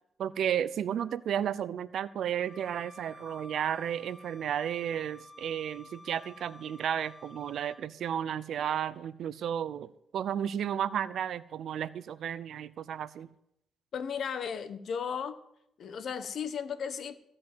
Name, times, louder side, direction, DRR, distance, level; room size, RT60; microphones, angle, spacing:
voice 1, 0.2-13.3, right 9 dB, 65° right, 17 dB, 0.6 m, -33 dB
Bowed string instrument, 2.4-7.8, left 2 dB, 25° left, 4.0 m, -52 dB
voice 2, 13.9-15.4 15.8-17.1, left 7 dB, 60° left, 11 dB, 1.2 m, -35 dB
15.5 x 5.5 x 9.2 m, 0.78 s
cardioid pair, 90°, 0 cm